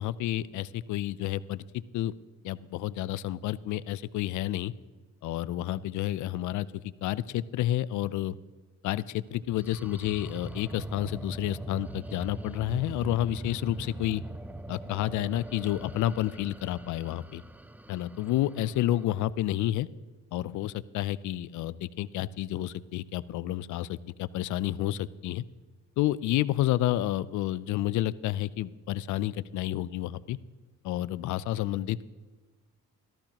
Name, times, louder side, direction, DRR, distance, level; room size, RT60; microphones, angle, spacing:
voice 1, 0.0-2.1 2.4-4.7 5.2-6.7 7.0-8.4 8.8-14.2 14.7-17.4 17.9-19.9 20.3-25.4 26.0-30.4 30.8-32.1, left 14 dB, 75° left, 18 dB, 0.5 m, -30 dB
sound 1, 9.3-19.0, right 1 dB, 5° right, 0.4 m, -41 dB
14.0 x 13.5 x 2.9 m, 1.3 s
cardioid pair, 90°, 30 cm